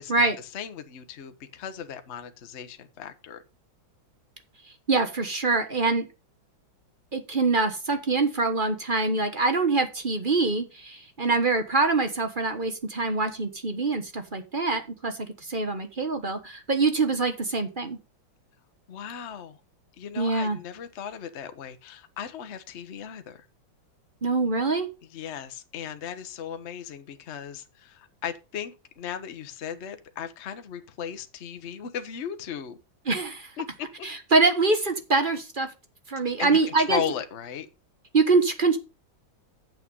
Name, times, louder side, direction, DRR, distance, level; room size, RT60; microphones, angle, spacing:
voice 1, 0.0-3.4 18.9-19.6 20.0-23.4 25.1-32.8 33.6-33.9 36.4-37.7, left 8 dB, 45° left, 1.0 m, -36 dB
voice 2, 4.9-6.1 7.1-18.0 20.2-20.6 24.2-24.9 33.1-33.5 34.0-35.7 36.1-37.0 38.1-38.8, right 3 dB, 30° right, 1.1 m, -24 dB
8.6 x 7.6 x 5.4 m
omnidirectional pair, 2.2 m